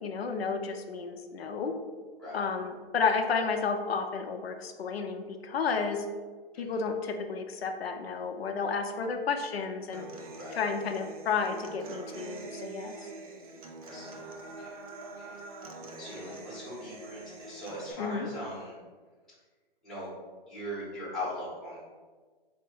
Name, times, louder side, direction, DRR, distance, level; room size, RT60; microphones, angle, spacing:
voice 1, 0.0-1.7 2.3-6.1 6.6-10.0 10.5-13.1 18.0-18.3, left 5 dB, 90° left, 5 dB, 0.6 m, -32 dB
Human voice / Acoustic guitar, 9.9-17.9, right 2 dB, 40° right, 0.5 m, -44 dB
voice 2, 13.8-15.4 16.0-18.7 19.8-20.1 20.5-21.8, left 1 dB, ahead, -10 dB, 0.7 m, -40 dB
4.4 x 2.1 x 4.6 m, 1.5 s
hypercardioid pair, 165°, 30 cm